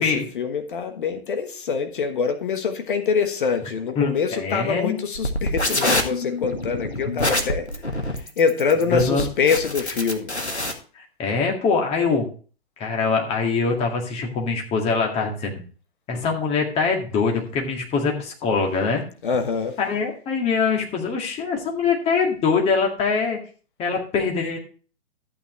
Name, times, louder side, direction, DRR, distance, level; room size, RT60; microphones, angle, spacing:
voice 1, 0.0-10.3 19.2-19.8, left 5 dB, 50° left, 7 dB, 1.4 m, -25 dB
voice 2, 4.0-5.0 8.9-9.3 10.9-12.3 12.8-15.6 16.1-19.0 19.8-23.4 23.8-24.6, left 5 dB, 20° left, 1 dB, 2.2 m, -23 dB
sound 1, 5.1-10.7, left 1 dB, 90° left, 1.8 m, -25 dB
12.5 x 8.8 x 3.1 m, 0.39 s
figure-of-eight pair, 120°, 33 cm